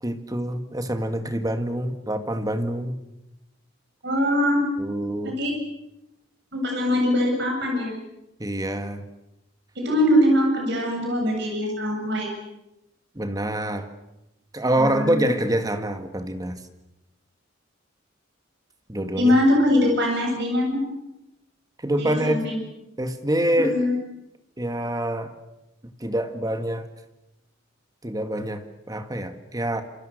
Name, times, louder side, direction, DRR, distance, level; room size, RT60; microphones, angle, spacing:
voice 1, 0.0-3.0 4.8-5.4 8.4-9.0 13.2-13.9 14.5-16.6 18.9-19.4 21.8-22.5 23.0-23.7 24.6-25.3 26.0-26.9 28.0-29.8, right 1 dB, 20° right, 8 dB, 1.9 m, -26 dB
voice 2, 4.0-4.6 5.2-5.6 6.5-8.0 9.7-12.3 14.8-15.2 19.2-20.8 22.0-22.6 23.6-24.0, left 1 dB, 60° right, 1 dB, 7.8 m, -22 dB
27.5 x 25.5 x 6.7 m, 0.90 s
head